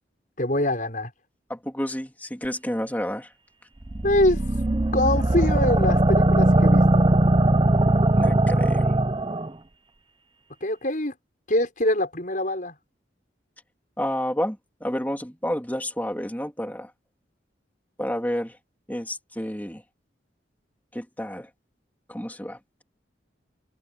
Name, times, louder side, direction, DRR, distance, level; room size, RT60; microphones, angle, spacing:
voice 1, 0.4-1.1 4.0-4.4 4.9-7.0 10.6-11.1 11.5-12.7, left 1 dB, 45° left, 6.4 m, -24 dB
voice 2, 1.5-3.3 8.1-8.9 14.0-16.9 18.0-18.6 18.9-19.8 20.9-21.5 22.1-22.6, equal, 10° left, 3.3 m, -30 dB
sound 1, 3.9-9.5, right 1 dB, 25° right, 0.7 m, -20 dB
head